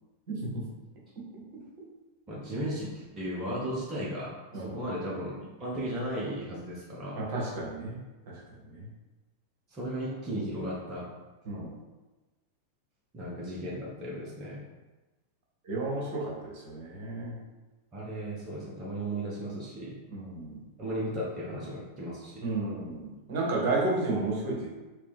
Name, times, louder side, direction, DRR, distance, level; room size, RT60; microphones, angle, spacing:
voice 1, 0.3-0.6 4.5-4.8 5.7-5.8 7.2-8.0 8.3-8.9 11.4-11.7 15.6-17.4 20.1-20.6 22.4-24.7, right 2 dB, 50° right, -3 dB, 1.1 m, -32 dB
voice 2, 2.3-7.2 9.7-11.1 13.1-14.6 17.9-20.0 20.8-22.5, right 1 dB, 25° right, -6 dB, 0.8 m, -35 dB
3.2 x 3.0 x 3.5 m, 1.2 s
figure-of-eight pair, 90°, 0 cm